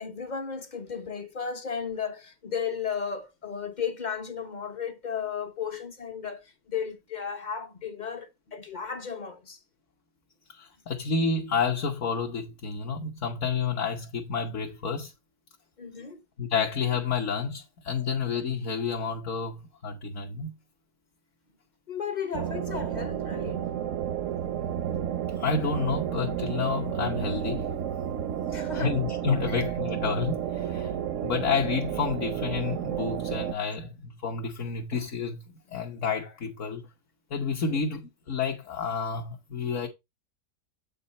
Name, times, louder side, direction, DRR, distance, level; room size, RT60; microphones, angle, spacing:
voice 1, 0.0-9.6 15.8-16.2 21.9-23.7 28.5-29.0 29.5-29.6 37.7-37.8, left 6 dB, 35° left, 0.8 m, -34 dB
voice 2, 10.5-15.1 16.4-20.5 25.4-27.7 28.7-30.9 31.2-35.4 35.7-36.8 37.3-39.9, left 5 dB, 55° left, 1.3 m, -30 dB
sound 1, 22.3-33.5, right 10 dB, 65° right, 0.9 m, -31 dB
7.8 x 5.4 x 4.1 m
omnidirectional pair, 1.7 m